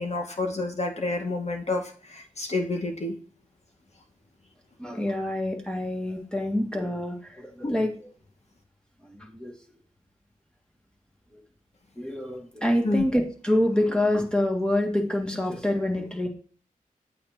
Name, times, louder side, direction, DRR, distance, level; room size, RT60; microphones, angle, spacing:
voice 1, 0.0-3.2 7.6-7.8 12.8-13.0, left 2 dB, 50° left, 3 dB, 1.8 m, -29 dB
voice 2, 4.8-7.9 9.1-9.5 12.0-16.3, left 1 dB, 5° left, 2 dB, 2.0 m, -26 dB
8.7 x 8.4 x 2.8 m, 0.41 s
cardioid pair, 70°, 14 cm